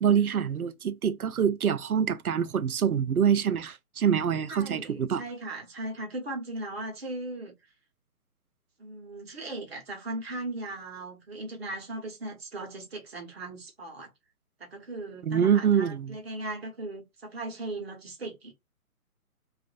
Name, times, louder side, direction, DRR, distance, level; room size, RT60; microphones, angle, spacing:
voice 1, 0.0-5.2 15.2-16.2, right 8 dB, 80° right, 0.5 m, -25 dB
voice 2, 4.5-7.6 8.8-14.1 14.6-18.5, right 2 dB, 45° right, 1.0 m, -38 dB
2.5 x 2.4 x 2.3 m
figure-of-eight pair, 140°, 44 cm